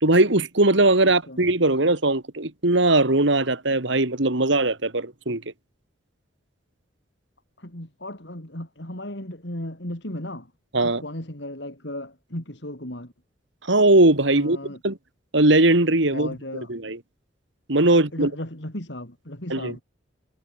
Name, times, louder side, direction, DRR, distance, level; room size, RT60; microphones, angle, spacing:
voice 1, 0.0-5.4 10.7-11.0 13.6-14.6 14.8-15.0 15.3-16.3 16.7-17.0 17.7-18.3 19.5-19.8, right 2 dB, 70° right, 2.4 m, -19 dB
voice 2, 1.1-1.4 7.6-10.5 10.8-13.1 14.3-14.8 16.1-16.7 17.9-19.8, left 1 dB, 60° left, 4.4 m, -35 dB
head